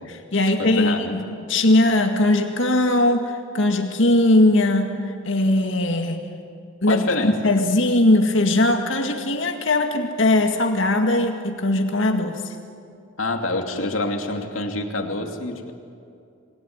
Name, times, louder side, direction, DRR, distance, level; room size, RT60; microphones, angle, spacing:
voice 1, 0.1-6.2 6.8-12.6, left 1 dB, 65° left, 4 dB, 2.0 m, -20 dB
voice 2, 0.6-1.2 6.9-7.4 13.2-15.7, left 2 dB, 85° left, 4 dB, 2.6 m, -26 dB
27.0 x 21.0 x 9.5 m, 2.5 s
head